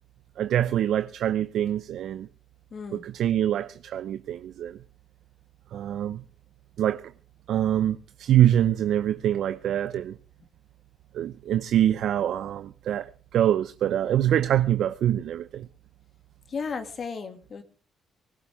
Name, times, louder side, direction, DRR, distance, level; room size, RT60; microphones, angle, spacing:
voice 1, 0.4-2.3 2.9-4.8 5.7-6.2 6.8-7.0 7.5-10.2 11.1-15.7, right 11 dB, 75° right, 0.7 m, -25 dB
voice 2, 2.7-3.0 16.5-17.6, left 5 dB, 50° left, 2.5 m, -34 dB
19.5 x 16.5 x 3.6 m
cardioid pair, 90°, 0 cm